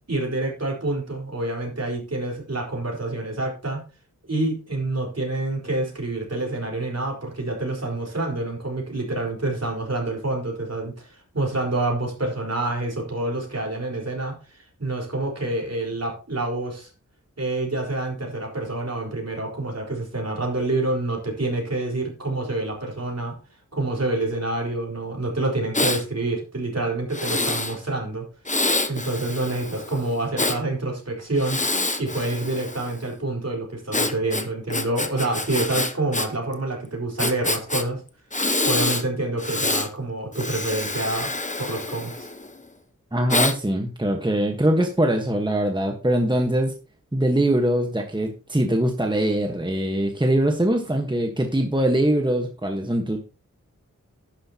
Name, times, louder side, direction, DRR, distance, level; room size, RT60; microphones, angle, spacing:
voice 1, 0.1-3.8 4.3-16.9 17.4-23.4 23.7-28.2 28.9-31.6 32.0-38.0 38.6-41.3 41.6-42.3, right 2 dB, 55° right, 0 dB, 4.5 m, -27 dB
Breathing, 25.7-26.0 27.1-27.8 28.5-30.6 31.4-33.0 33.9-36.3 36.5-36.6 37.2-37.8 38.3-39.0 39.4-39.9 40.3-42.5 43.3-43.6, left 2 dB, 25° left, 1.1 m, -26 dB
voice 2, 43.1-46.7 47.1-53.2, right 1 dB, 15° right, 3 dB, 1.3 m, -22 dB
11.5 x 9.8 x 2.9 m, 0.32 s
wide cardioid pair, 75°, 31 cm